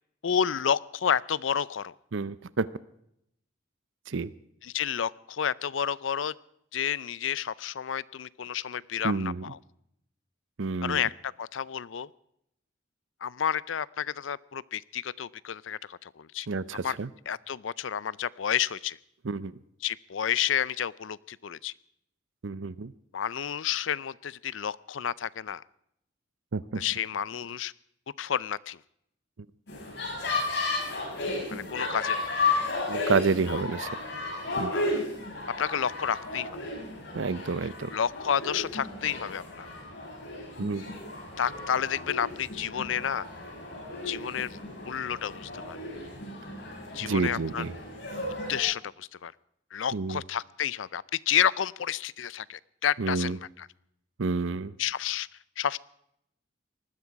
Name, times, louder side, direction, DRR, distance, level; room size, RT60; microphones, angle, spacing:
voice 1, 0.2-1.9 4.6-6.3 6.7-9.6 10.8-12.1 13.2-16.5 16.8-17.0 17.3-19.0 19.8-21.7 23.1-25.6 26.8-27.7 28.2-28.8 31.5-32.4 33.5-33.6 34.7-35.0 35.6-36.5 37.9-39.7 41.4-43.3 44.0-45.8 46.9-47.6 48.5-49.3 49.7-53.7 54.8-55.3 55.6-55.8, left 8 dB, 90° left, 21 dB, 0.5 m, -30 dB
voice 2, 2.1-2.7 4.1-4.3 9.0-9.4 10.6-11.0 16.5-17.1 19.2-19.5 22.4-22.9 26.5-26.8 32.9-34.0 34.6-34.7 37.1-37.9 40.6-40.8 47.0-47.7 49.9-50.2 53.0-53.4 54.2-54.7, right 4 dB, 90° right, 18 dB, 0.6 m, -29 dB
sound 1, 29.7-48.6, left 3 dB, 60° left, 6.9 m, -34 dB
20.0 x 14.0 x 4.7 m, 0.75 s
head